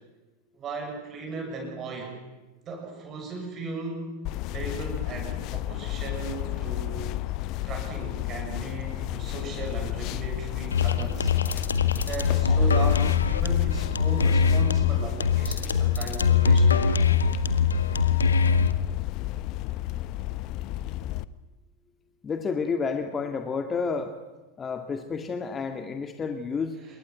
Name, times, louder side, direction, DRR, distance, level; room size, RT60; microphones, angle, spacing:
voice 1, 0.5-2.2 2.6-7.0 7.6-11.3 11.9-17.0 26.8-27.0, right 3 dB, 30° right, 2 dB, 6.8 m, -37 dB
sound 1, 4.2-21.2, left 16 dB, 40° left, 1.0 m, -32 dB
sound 2, 10.7-18.7, left 5 dB, 70° left, 1.8 m, -22 dB
voice 2, 22.2-24.2 24.6-26.8, left 5 dB, 20° left, 7 dB, 2.0 m, -30 dB
27.5 x 23.0 x 9.1 m, 1.1 s
figure-of-eight pair, 90°, 0 cm